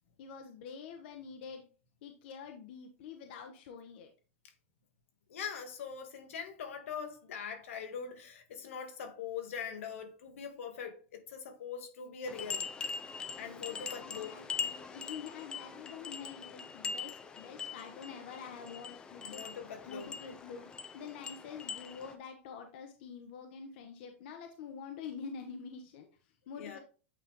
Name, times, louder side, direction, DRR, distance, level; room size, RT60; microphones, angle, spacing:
voice 1, 0.2-1.6 2.0-4.1 13.7-19.4 19.9-26.8, left 6 dB, 50° left, 0.9 m, -47 dB
voice 2, 5.3-12.7 13.4-14.4 19.2-20.1 26.6-26.8, left 7 dB, 80° left, 1.7 m, -42 dB
sound 1, 12.3-22.1, left 5 dB, 10° left, 0.4 m, -42 dB
8.5 x 3.4 x 3.7 m
supercardioid pair, 170°, 7 cm